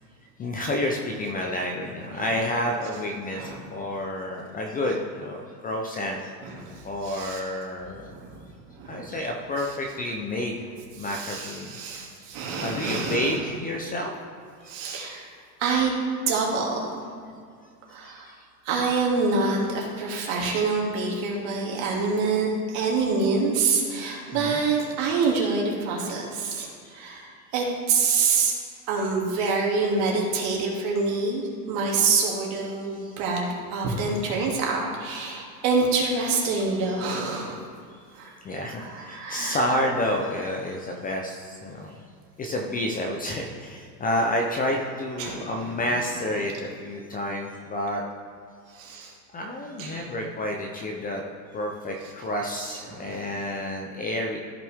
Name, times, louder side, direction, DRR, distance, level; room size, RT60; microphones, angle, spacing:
voice 1, 0.4-6.3 6.8-8.1 8.9-10.7 11.0-11.8 12.6-14.1 14.6-14.7 18.0-18.4 23.9-24.0 24.3-24.6 26.8-27.0 32.9-33.3 34.1-34.2 36.7-37.4 38.4-42.0 42.4-48.0 49.3-51.2 51.5-54.4, left 1 dB, 15° left, 1 dB, 0.6 m, -30 dB
voice 2, 6.4-7.4 8.0-8.4 8.7-9.1 11.0-13.4 14.6-15.3 15.6-15.9 16.3-17.0 17.9-18.3 18.6-28.5 28.9-37.6 38.1-38.3 38.8-39.6 45.2-45.8 48.7-49.1 49.8-50.1 52.9-53.2, right 4 dB, 55° right, -2 dB, 2.6 m, -26 dB
14.5 x 5.8 x 3.5 m, 2.2 s
supercardioid pair, 125°, 50 cm